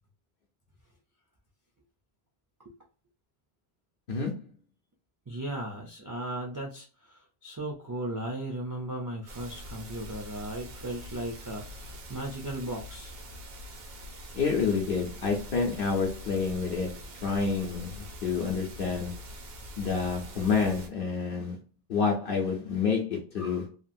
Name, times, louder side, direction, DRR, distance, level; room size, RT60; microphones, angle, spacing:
voice 1, 4.1-4.4 14.3-19.2 19.8-21.6 21.9-23.8, left 5 dB, 60° left, 0 dB, 0.9 m, -29 dB
voice 2, 5.3-13.1, right 1 dB, 30° right, 0 dB, 0.4 m, -36 dB
sound 1, 9.3-20.9, equal, 70° right, 0.9 m, -44 dB
2.9 x 2.4 x 2.5 m, 0.35 s
omnidirectional pair, 1.1 m